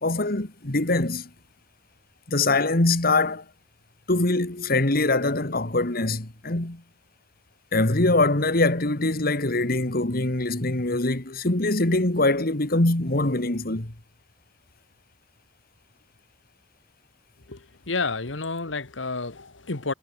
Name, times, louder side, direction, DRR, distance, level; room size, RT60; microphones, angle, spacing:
voice 1, 0.0-1.3 2.3-3.4 4.1-6.8 7.7-13.9, left 2 dB, 50° left, 2.2 m, -23 dB
voice 2, 17.5-19.9, left 3 dB, 85° left, 1.7 m, -30 dB
head